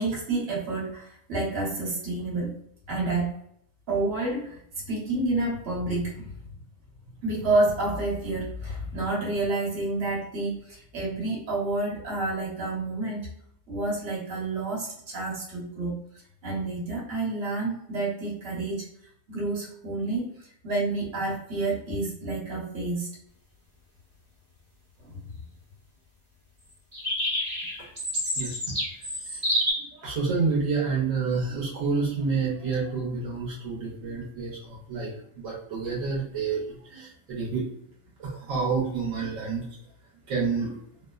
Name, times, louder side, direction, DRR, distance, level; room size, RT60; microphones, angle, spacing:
voice 1, 0.0-2.5 2.9-3.3 3.9-4.5 4.9-6.3 7.2-13.3 13.7-15.9 16.4-18.8 19.3-23.1 25.0-25.2, right 2 dB, 50° right, -4 dB, 1.1 m, -29 dB
sound 1, 26.9-29.7, equal, 25° right, 0.8 m, -28 dB
voice 2, 29.9-37.7 38.2-39.6 40.3-40.7, right 4 dB, 75° right, -4 dB, 1.1 m, -29 dB
2.7 x 2.1 x 2.3 m, 0.70 s
omnidirectional pair, 1.4 m